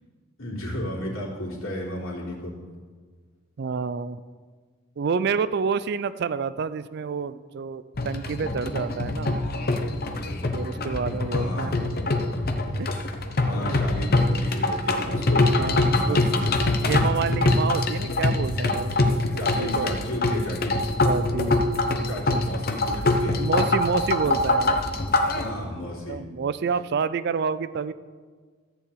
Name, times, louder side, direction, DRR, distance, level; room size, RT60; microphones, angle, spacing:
voice 1, 0.4-2.5 11.3-11.9 13.4-16.6 19.3-20.8 22.0-23.4 25.3-26.2, left 1 dB, 90° left, -5 dB, 3.2 m, -33 dB
voice 2, 3.6-4.2 5.0-9.4 10.5-11.9 12.8-12.9 13.7-13.8 15.6-16.2 16.8-20.0 21.0-21.7 22.3-22.4 23.4-24.8 26.1-27.9, right 5 dB, 55° right, 15 dB, 0.4 m, -28 dB
sound 1, 8.0-25.4, left 2 dB, 50° left, 0.8 m, -24 dB
14.0 x 4.7 x 8.5 m, 1.5 s
head